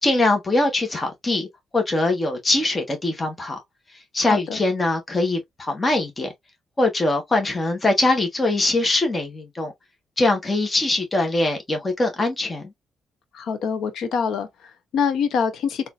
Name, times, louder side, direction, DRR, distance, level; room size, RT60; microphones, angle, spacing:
voice 1, 0.0-1.5 1.7-3.6 4.1-6.3 6.8-9.7 10.2-12.7, left 2 dB, 25° left, 1.3 m, -22 dB
voice 2, 13.3-15.9, left 6 dB, 75° left, 0.9 m, -25 dB
4.1 x 2.7 x 2.5 m
cardioid pair, 90°, 0 cm